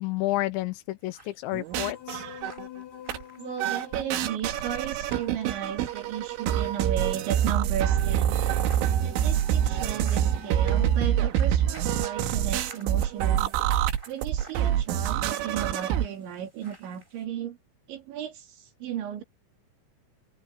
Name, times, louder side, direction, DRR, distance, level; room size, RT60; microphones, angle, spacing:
voice 1, 0.0-2.2, left 17 dB, 80° left, 2.9 m, -30 dB
sound 1, 1.0-17.2, right 1 dB, 10° right, 6.2 m, -53 dB
sound 2, 1.5-2.8 3.1-3.2 3.6-16.1, right 10 dB, 85° right, 4.0 m, -26 dB
sound 3, 1.7-6.2 8.5-11.0, left 11 dB, 60° left, 4.4 m, -46 dB
voice 2, 3.4-8.3 8.8-13.5 14.1-17.6 17.9-19.2, right 9 dB, 70° right, 5.0 m, -35 dB
open air
omnidirectional pair, 5.5 m